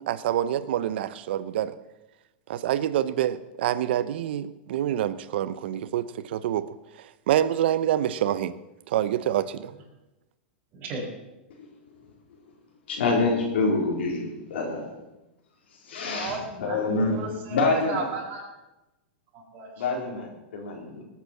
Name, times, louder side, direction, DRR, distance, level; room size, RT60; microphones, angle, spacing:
voice 1, 0.0-1.8 2.5-6.7 7.0-8.5 8.9-9.7, right 11 dB, 70° right, 15 dB, 0.9 m, -26 dB
voice 2, 10.7-11.1 16.1-16.9 17.1-17.5 17.9-18.4 19.3-19.8, right 3 dB, 35° right, -6 dB, 5.1 m, -35 dB
voice 3, 12.9-14.9 16.0-18.1 19.8-21.0, left 3 dB, 85° left, 0 dB, 3.9 m, -26 dB
19.0 x 8.5 x 7.2 m, 0.99 s
hypercardioid pair, 130°, 6 cm